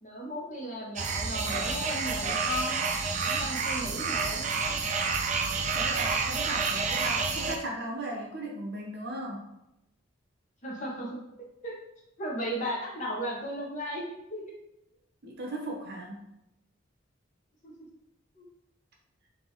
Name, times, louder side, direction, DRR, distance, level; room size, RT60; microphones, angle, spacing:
voice 1, 0.0-2.8 3.2-4.4 10.6-11.2 11.6-11.8 12.2-14.5 17.6-17.7 18.4-18.5, equal, 40° left, -3 dB, 1.0 m, -35 dB
sound 1, 1.0-7.6, right 5 dB, 40° right, 0.4 m, -29 dB
voice 2, 5.7-9.5 15.2-16.3, right 1 dB, 55° right, 0 dB, 0.9 m, -37 dB
3.5 x 2.8 x 3.9 m, 0.86 s
head